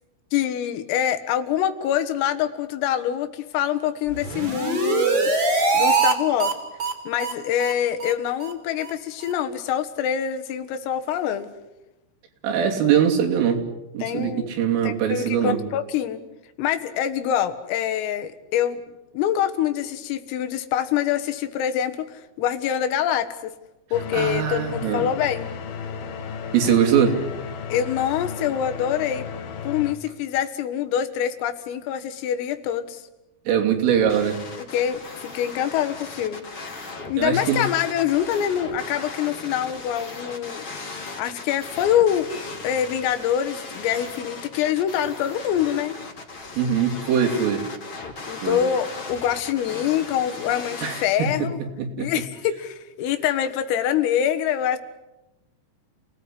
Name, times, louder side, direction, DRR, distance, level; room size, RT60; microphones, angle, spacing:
voice 1, 0.3-5.3 5.7-6.5 7.1-11.5 14.0-14.5 14.8-16.2 16.6-18.8 19.1-23.5 23.9-25.5 27.7-29.3 29.7-33.0 34.6-36.4 37.1-40.6 41.2-42.3 42.6-46.0 48.3-51.6 52.0-54.8, left 10 dB, 85° left, 8 dB, 4.3 m, -25 dB
sound 1, 4.1-6.1 6.4-6.5 6.8-6.9 7.2-7.3 7.6-7.7 8.0-8.1 8.4-8.5 8.8-8.9 9.2-9.3, right 3 dB, 25° right, 3.4 m, -22 dB
voice 2, 12.4-13.6 13.9-15.6 24.1-25.1 26.5-27.2 33.5-34.4 37.2-37.7 46.6-47.6 48.4-48.6 50.8-51.5 51.8-52.1, right 8 dB, 75° right, 2 dB, 5.5 m, -22 dB
sound 2, 23.9-29.9, left 6 dB, 55° left, 3.2 m, -34 dB
sound 3, 33.9-51.0, left 3 dB, 30° left, 3.1 m, -37 dB
29.5 x 19.0 x 9.9 m, 0.99 s
omnidirectional pair, 5.8 m